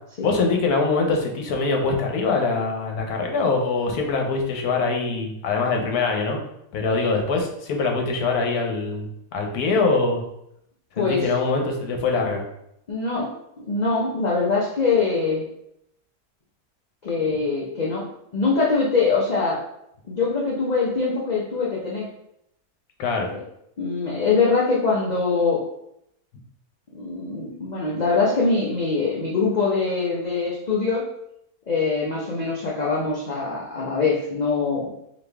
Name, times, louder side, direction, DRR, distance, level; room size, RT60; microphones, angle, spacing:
voice 1, 0.2-6.4 6.7-10.2 11.0-12.4 23.0-23.3, left 3 dB, 80° left, 2 dB, 1.3 m, -23 dB
voice 2, 11.0-11.3 12.9-13.3 13.7-15.4 17.0-18.0 18.3-19.6 20.1-22.1 23.3-23.4 23.8-25.6 26.9-31.1 31.7-34.9, left 4 dB, 50° left, -4 dB, 0.5 m, -23 dB
4.2 x 3.0 x 3.4 m, 0.77 s
omnidirectional pair, 1.6 m